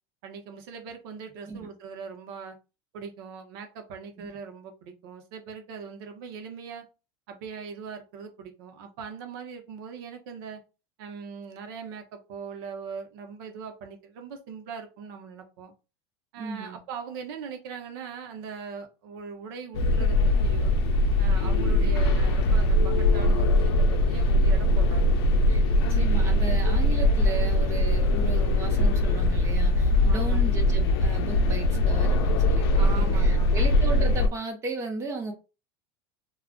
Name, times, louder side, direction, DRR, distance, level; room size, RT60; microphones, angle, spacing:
voice 1, 0.2-2.6 2.9-6.8 7.3-10.6 11.0-15.7 16.3-20.2 20.4-20.8 21.2-25.1 30.1-30.4 32.7-33.8, right 6 dB, 65° right, 0.8 m, -40 dB
voice 2, 16.4-16.8 25.5-35.3, right 4 dB, 20° right, 0.7 m, -36 dB
sound 1, 19.7-34.3, left 1 dB, 90° left, 0.5 m, -21 dB
2.3 x 2.2 x 3.7 m
supercardioid pair, 165°, 13 cm